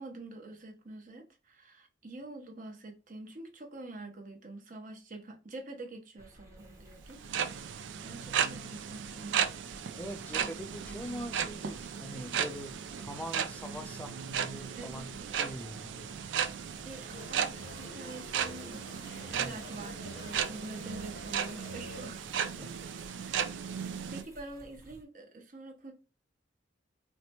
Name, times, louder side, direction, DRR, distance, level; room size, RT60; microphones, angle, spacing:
voice 1, 0.0-9.8 14.7-15.2 16.8-22.2 22.6-22.7 23.2-25.9, right 2 dB, 45° right, 0.9 m, -46 dB
sound 1, 6.2-25.0, right 1 dB, 15° right, 0.9 m, -55 dB
sound 2, 7.1-24.2, right 8 dB, 70° right, 0.4 m, -36 dB
voice 2, 9.9-16.0 19.3-19.6 22.6-22.7, equal, 10° left, 0.4 m, -43 dB
sound 3, 17.1-22.1, left 2 dB, 60° left, 0.8 m, -49 dB
4.2 x 2.2 x 2.8 m
head